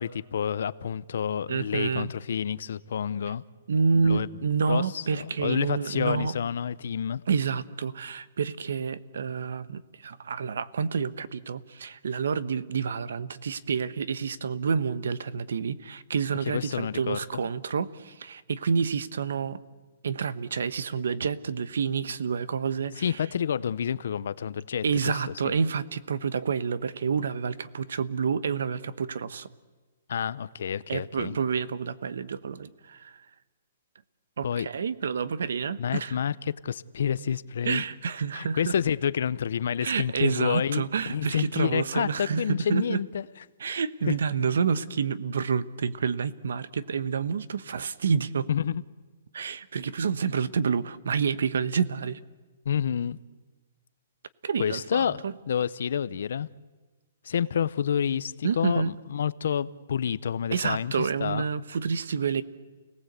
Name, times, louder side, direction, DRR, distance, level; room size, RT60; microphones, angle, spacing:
voice 1, 0.0-3.4 3.9-4.3 4.7-7.2 16.5-17.4 23.0-25.2 25.4-25.6 30.1-31.4 34.4-34.7 35.8-36.3 36.6-37.8 38.3-43.2 44.1-44.2 48.5-48.8 52.7-53.2 54.6-56.5 57.2-61.4, left 8 dB, 60° left, 0.7 m, -29 dB
voice 2, 1.5-2.1 3.7-6.3 7.3-19.6 20.0-23.2 24.8-29.5 30.9-33.2 34.4-36.2 37.6-38.7 39.8-43.0 43.6-48.5 49.3-52.2 54.4-55.3 58.4-58.9 60.5-62.4, right 6 dB, 75° right, 1.1 m, -29 dB
30.0 x 18.5 x 8.2 m
hypercardioid pair, 180°, 0 cm